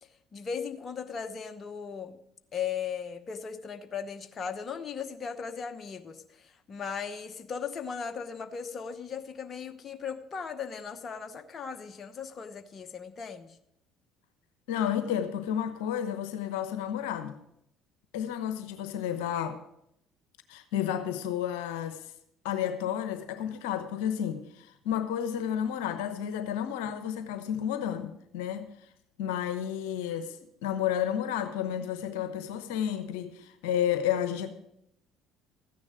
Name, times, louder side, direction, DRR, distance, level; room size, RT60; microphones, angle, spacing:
voice 1, 0.0-2.2 2.5-13.6, left 6 dB, 40° left, 1.0 m, -37 dB
voice 2, 14.7-17.4 18.1-19.6 20.5-22.0 22.4-28.7 29.2-30.4 30.6-34.5, left 9 dB, 75° left, 1.0 m, -31 dB
14.0 x 9.7 x 5.1 m
hypercardioid pair, 60°, 0 cm